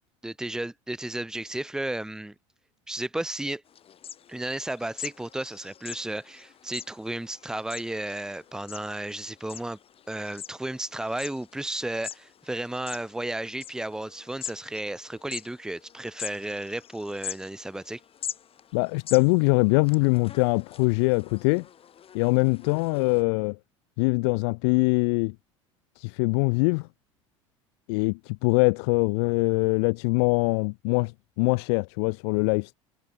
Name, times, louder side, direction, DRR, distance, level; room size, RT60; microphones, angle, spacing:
voice 1, 0.2-2.3 2.9-3.6 4.3-9.8 10.1-18.0, right 1 dB, 5° right, 1.1 m, -33 dB
sound 1, 3.7-23.2, left 9 dB, 35° left, 6.3 m, -44 dB
voice 2, 18.7-21.6 22.1-23.6 24.0-25.3 26.0-26.9 27.9-31.1 31.4-32.7, left 32 dB, 55° left, 0.4 m, -23 dB
figure-of-eight pair, 70°, 16 cm